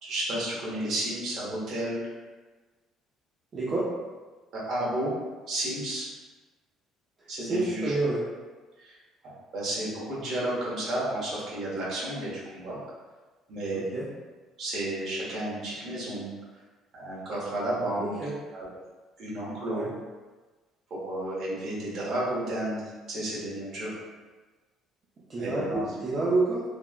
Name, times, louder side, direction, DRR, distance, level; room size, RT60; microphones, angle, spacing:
voice 1, 0.0-2.0 4.5-5.1 5.5-6.0 7.3-7.9 8.8-9.0 9.5-12.8 13.5-13.9 14.6-16.3 16.9-18.2 18.5-18.7 19.2-19.9 20.9-23.9 25.4-25.8, right 1 dB, 65° right, -8 dB, 1.3 m, -32 dB
voice 2, 3.5-3.9 7.2-8.2 13.9-14.1 18.0-18.3 19.6-19.9 25.3-26.6, right 2 dB, 45° right, -7 dB, 0.6 m, -28 dB
3.3 x 2.2 x 2.4 m, 1.3 s
hypercardioid pair, 60°, 0 cm